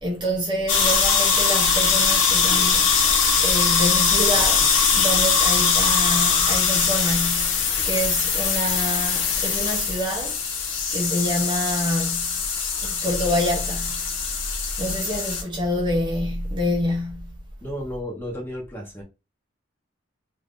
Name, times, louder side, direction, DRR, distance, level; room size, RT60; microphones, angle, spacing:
voice 1, 0.0-2.9 3.4-10.4 10.9-12.4 12.8-14.1 14.8-17.4, equal, 25° right, 0.7 m, -27 dB
sound 1, 0.7-15.4, left 5 dB, 65° left, 0.8 m, -21 dB
voice 2, 17.6-19.0, equal, 10° left, 0.9 m, -33 dB
2.6 x 2.5 x 3.6 m
head